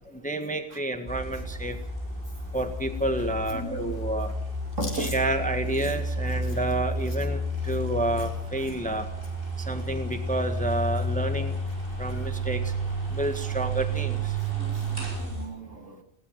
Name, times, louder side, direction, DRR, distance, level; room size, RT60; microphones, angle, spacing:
voice 1, 0.1-1.8 2.5-4.3 4.9-9.1 9.6-11.6 12.0-12.7 13.1-14.4, right 1 dB, 5° left, 6 dB, 1.5 m, -30 dB
sound 1, 1.1-15.5, right 1 dB, 40° right, 8.2 m, -31 dB
voice 2, 3.5-3.9 4.8-5.1 14.5-16.0, right 1 dB, 60° right, 3 dB, 3.5 m, -35 dB
Chewing mastication, 4.7-9.0 9.2-9.5 9.8-10.7 10.9-11.3 11.5-12.2 12.6-12.8 13.8-14.2, left 2 dB, 35° left, 3.7 m, -46 dB
19.5 x 18.0 x 7.6 m, 0.73 s
omnidirectional pair, 1.5 m